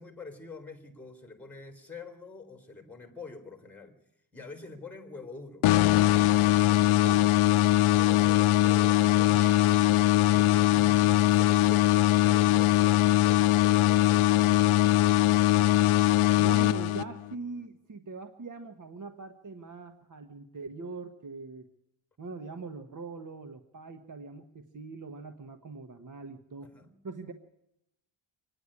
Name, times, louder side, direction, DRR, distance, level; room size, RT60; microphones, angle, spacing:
voice 1, 0.0-4.0 4.3-5.7 6.7-7.2 8.0-15.1 26.6-26.9, left 3 dB, 5° left, 6 dB, 3.4 m, -46 dB
sound 1, 5.6-17.3, left 15 dB, 85° left, 0.7 m, -22 dB
sound 2, 9.3-10.9, right 3 dB, 70° right, 7.0 m, -51 dB
voice 2, 16.3-21.7 22.2-26.7 27.0-27.3, right 4 dB, 40° right, 7 dB, 1.3 m, -42 dB
26.0 x 10.0 x 9.8 m, 0.82 s
cardioid pair, 120°, 49 cm